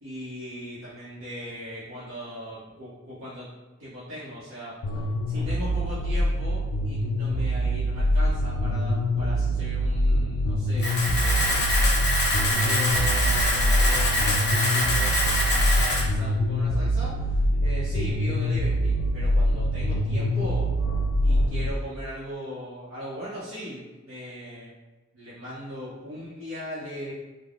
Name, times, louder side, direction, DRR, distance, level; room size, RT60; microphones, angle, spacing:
voice 1, 0.0-3.5 3.8-11.9 12.3-20.7 21.2-24.7 25.1-27.1, equal, 75° right, -10 dB, 0.7 m, -39 dB
sound 1, 4.8-21.7, equal, 85° left, 0.3 m, -24 dB
Camera, 10.8-16.0, left 1 dB, 55° left, 0.8 m, -25 dB
3.3 x 2.0 x 2.4 m, 1.2 s
head